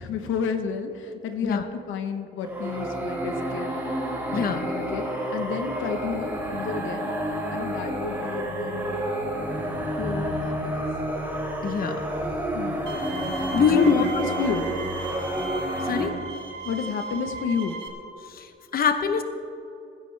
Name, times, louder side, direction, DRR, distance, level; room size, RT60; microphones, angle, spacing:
voice 1, 0.0-3.7 4.3-7.1 7.5-10.9 12.5-12.8 13.7-14.7 16.6-17.8, left 6 dB, 80° left, 7 dB, 1.1 m, -31 dB
sound 1, 2.4-16.1, right 1 dB, 10° right, 3.3 m, -29 dB
voice 2, 4.3-4.6 11.6-12.0 12.9-13.0 13.5-14.0 15.8-16.2 18.3-19.2, left 6 dB, 50° left, 8 dB, 0.9 m, -23 dB
Bowed string instrument, 12.9-17.9, right 3 dB, 60° right, 2.0 m, -36 dB
21.5 x 10.5 x 3.4 m, 2.8 s
cardioid pair, 90°, 20 cm